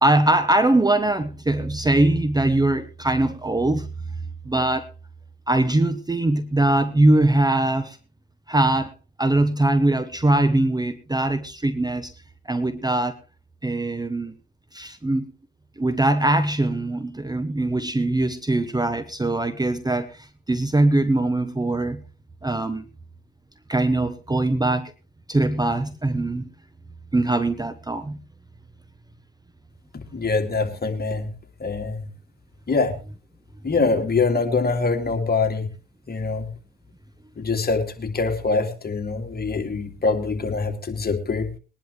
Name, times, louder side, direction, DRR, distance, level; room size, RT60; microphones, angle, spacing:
voice 1, 0.0-3.9 4.5-4.9 5.5-8.0 8.5-8.9 9.2-12.1 12.5-13.2 13.6-14.3 14.7-15.3 15.8-22.0 22.4-22.8 23.7-24.9 25.3-26.5 27.1-28.2, right 2 dB, 15° right, 13 dB, 1.0 m, -21 dB
voice 2, 30.1-31.3 31.6-32.1 32.7-32.9 33.6-35.7 36.1-36.5 37.4-41.5, left 4 dB, 30° left, 4 dB, 2.8 m, -24 dB
21.0 x 10.5 x 3.3 m, 0.33 s
hypercardioid pair, 60°, 30 cm